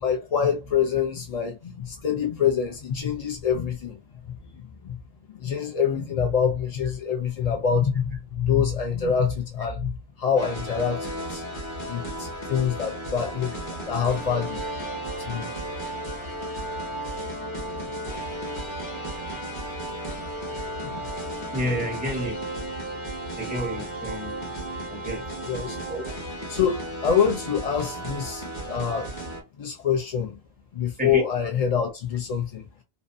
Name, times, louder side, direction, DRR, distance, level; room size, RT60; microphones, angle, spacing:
voice 1, 0.0-5.0 5.3-11.4 11.9-14.6 15.2-15.5 20.8-21.1 25.5-25.8 26.5-29.1 29.6-30.4 30.7-32.7, left 7 dB, 60° left, 0.4 m, -26 dB
sound 1, 10.4-29.4, right 1 dB, 30° left, 0.8 m, -34 dB
voice 2, 21.5-22.4 23.4-24.4 24.9-25.2 25.9-26.1 31.0-31.3, equal, 10° right, 0.5 m, -30 dB
2.5 x 2.1 x 2.5 m
omnidirectional pair, 1.1 m